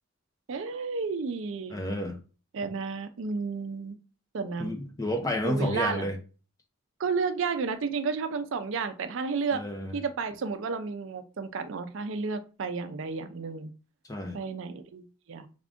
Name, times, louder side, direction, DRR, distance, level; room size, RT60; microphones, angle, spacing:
voice 1, 0.5-1.8 2.5-4.0 4.3-4.7 5.4-6.1 7.0-9.6 9.9-13.7 14.3-15.5, right 5 dB, 60° right, 0.4 m, -32 dB
voice 2, 1.7-2.2 4.6-6.2 9.5-9.9 14.1-14.4, left 1 dB, 15° left, 0.5 m, -30 dB
3.5 x 2.5 x 3.5 m
head